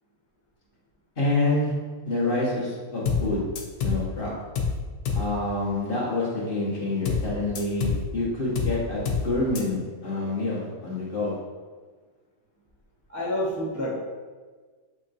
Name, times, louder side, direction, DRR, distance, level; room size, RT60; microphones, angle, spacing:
voice 1, 1.2-1.7 2.0-3.4 3.8-4.3 5.1-11.3, left 2 dB, 40° left, -6 dB, 1.3 m, -27 dB
sound 1, 3.1-3.3 3.6-4.0 4.6-4.8 5.1-5.3 7.1-7.3 7.6-8.0 8.6-8.8 9.1-9.3 9.6-9.7, left 5 dB, 80° left, 1.2 m, -26 dB
voice 2, 13.1-13.9, equal, 20° right, -7 dB, 0.4 m, -28 dB
7.0 x 2.9 x 2.6 m, 1.4 s
omnidirectional pair, 1.6 m